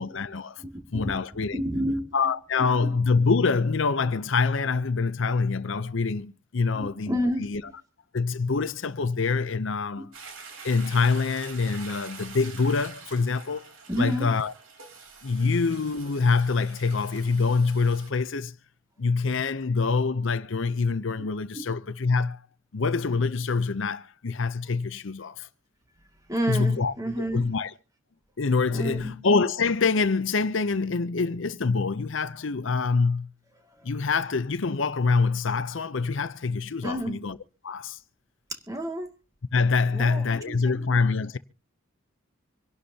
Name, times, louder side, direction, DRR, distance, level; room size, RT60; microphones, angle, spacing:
voice 1, 0.0-0.6 0.9-1.6 2.1-7.6 8.1-10.1 10.6-13.7 14.0-14.5 15.2-18.5 19.0-22.4 22.7-25.5 26.5-26.9 27.3-27.7 28.4-33.3 33.8-37.4 37.6-38.0 39.5-41.4, left 4 dB, 65° left, 0.6 m, -25 dB
voice 2, 0.6-1.2 1.5-2.1 2.8-2.9 6.7-7.5 10.0-10.1 13.9-14.3 21.5-21.6 26.3-27.4 28.7-29.1 33.8-33.9 36.8-37.2 38.5-39.1 39.9-41.0, equal, 15° right, 2.2 m, -30 dB
Toilet flush, 10.1-18.1, right 5 dB, 70° right, 3.7 m, -46 dB
26.0 x 11.5 x 2.8 m
head